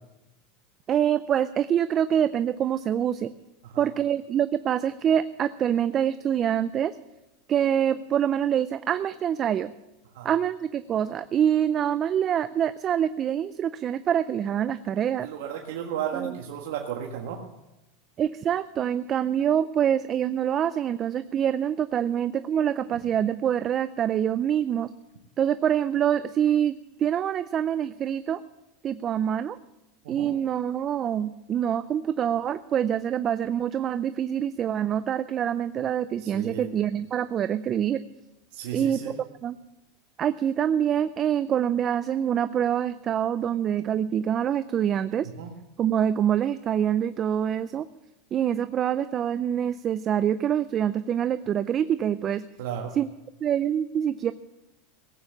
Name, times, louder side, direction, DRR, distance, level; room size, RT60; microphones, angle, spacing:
voice 1, 0.9-3.3 3.8-7.0 7.5-9.7 10.2-15.3 16.1-16.4 18.2-24.9 25.4-28.4 28.8-29.6 30.1-38.0 38.7-39.2 39.4-39.6 40.2-45.3 45.8-47.9 48.3-52.4 52.9-53.1 53.4-54.3, right 9 dB, 35° right, 13 dB, 0.4 m, -25 dB
voice 2, 15.2-17.4 30.0-30.3 36.2-36.7 38.5-39.1 45.4-45.5 52.6-52.9, right 8 dB, 75° right, 1 dB, 1.6 m, -34 dB
17.0 x 8.8 x 7.1 m, 0.95 s
supercardioid pair, 125°, 0 cm